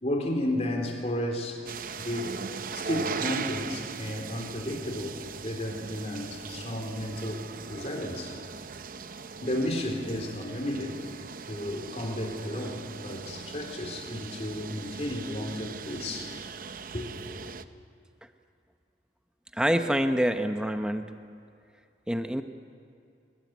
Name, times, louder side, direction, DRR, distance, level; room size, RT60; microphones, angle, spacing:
voice 1, 0.0-1.6 2.0-2.4 2.7-8.3 9.4-11.0 11.5-16.5 16.9-17.1 17.4-17.5, left 1 dB, 35° left, 2 dB, 3.9 m, -33 dB
sound 1, 1.7-17.6, right 5 dB, 50° right, 0.7 m, -39 dB
voice 2, 19.5-21.1 22.1-22.4, equal, 5° right, 7 dB, 0.9 m, -26 dB
23.0 x 20.5 x 9.5 m, 2.4 s
head